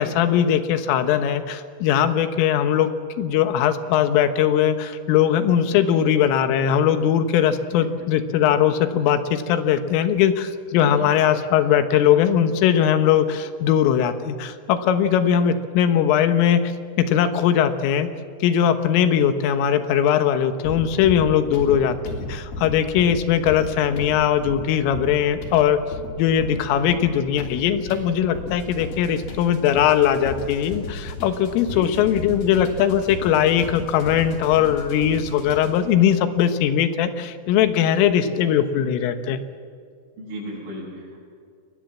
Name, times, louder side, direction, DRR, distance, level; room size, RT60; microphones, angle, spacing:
voice 1, 0.0-2.9 3.2-16.7 17.0-18.1 18.4-22.0 22.3-25.8 26.2-39.4, left 9 dB, 90° left, 9 dB, 3.8 m, -20 dB
sound 1, 20.6-35.9, left 2 dB, 50° left, 4.6 m, -35 dB
voice 2, 40.2-41.2, equal, 75° right, -2 dB, 10.5 m, -36 dB
28.5 x 21.0 x 7.4 m, 2.3 s
omnidirectional pair, 5.7 m